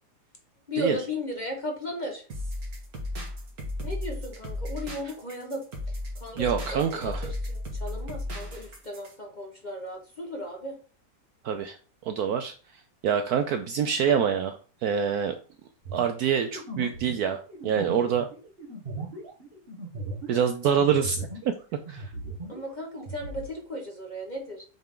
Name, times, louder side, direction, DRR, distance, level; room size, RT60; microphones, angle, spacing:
voice 1, 0.7-2.3 3.8-10.8 22.5-24.6, left 1 dB, 30° left, 1 dB, 1.0 m, -36 dB
sound 1, 2.3-9.1, left 1 dB, 55° right, 2.0 m, -35 dB
voice 2, 6.3-7.3 11.4-11.8 12.1-12.5 13.0-15.3 15.9-18.2 20.3-21.3 21.9-22.1, right 7 dB, 70° right, 7 dB, 0.9 m, -26 dB
sound 2, 15.8-21.6 21.9-23.5, right 2 dB, 35° right, 1.5 m, -38 dB
7.8 x 3.5 x 3.7 m, 0.39 s
omnidirectional pair, 2.0 m